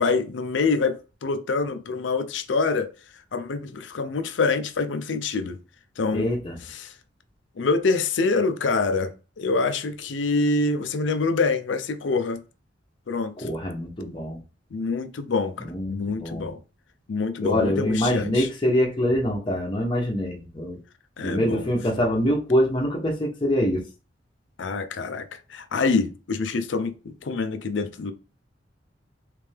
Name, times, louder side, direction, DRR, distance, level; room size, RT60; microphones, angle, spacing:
voice 1, 0.0-2.9 3.3-5.6 6.0-6.3 6.6-6.9 7.6-12.4 13.1-13.5 14.7-16.6 17.1-18.5 21.2-21.7 24.6-28.1, left 4 dB, 75° left, 0.5 m, -26 dB
voice 2, 6.1-6.6 13.4-14.4 15.6-16.5 17.4-20.8 21.2-23.8, equal, 25° left, 0.9 m, -24 dB
3.4 x 3.3 x 3.3 m
head